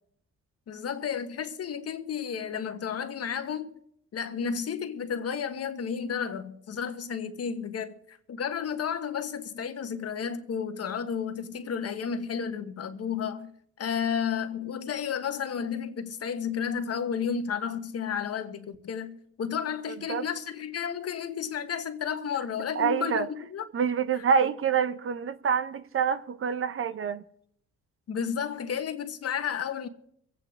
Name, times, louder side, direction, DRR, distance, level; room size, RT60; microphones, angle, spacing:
voice 1, 0.7-3.8 4.1-23.6 28.1-29.9, left 7 dB, 50° left, 1.3 m, -32 dB
voice 2, 22.8-23.3 23.7-27.2, right 7 dB, 45° right, 0.7 m, -26 dB
25.0 x 8.9 x 3.7 m
cardioid pair, 90°, 30 cm